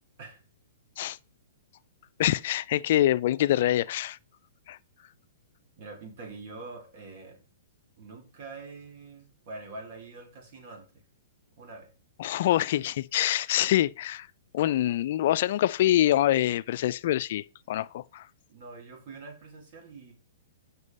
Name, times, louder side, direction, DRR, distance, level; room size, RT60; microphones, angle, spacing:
voice 1, 2.2-4.2 4.7-4.8 12.2-14.3 14.5-18.3, left 13 dB, 50° left, 0.3 m, -25 dB
voice 2, 5.8-7.4 8.0-10.9 11.6-11.9 18.5-20.1, right 3 dB, 45° right, 3.9 m, -44 dB
8.1 x 5.9 x 5.3 m
hypercardioid pair, 155°, 0 cm